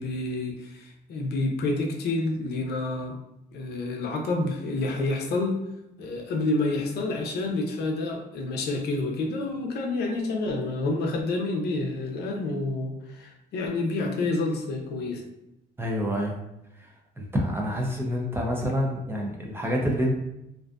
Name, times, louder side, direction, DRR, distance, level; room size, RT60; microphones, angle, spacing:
voice 1, 0.0-3.2 3.5-5.6 6.0-15.2, left 2 dB, 65° left, 1 dB, 0.5 m, -28 dB
voice 2, 15.8-16.4 16.8-16.9 17.2-20.2, equal, 15° right, -1 dB, 0.4 m, -27 dB
2.5 x 2.4 x 2.3 m, 0.87 s
cardioid pair, 135°, 18 cm